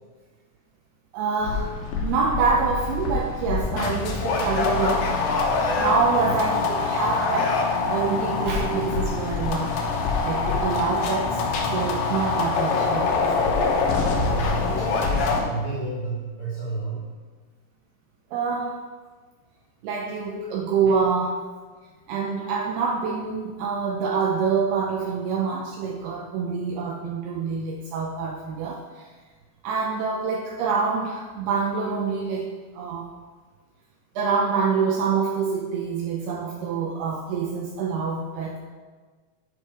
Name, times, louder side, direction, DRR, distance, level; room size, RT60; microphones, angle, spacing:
voice 1, 1.1-5.2 5.8-7.6 7.9-9.8 10.2-13.3 18.3-18.8 19.8-21.4 22.1-29.1 29.6-33.1 34.2-38.6, right 5 dB, 85° right, 0 dB, 2.4 m, -26 dB
sound 1, 1.4-15.4, left 4 dB, 75° left, 2.2 m, -25 dB
voice 2, 13.7-17.0, right 3 dB, 40° left, -8 dB, 1.8 m, -31 dB
11.0 x 5.0 x 4.8 m, 1.4 s
omnidirectional pair, 5.2 m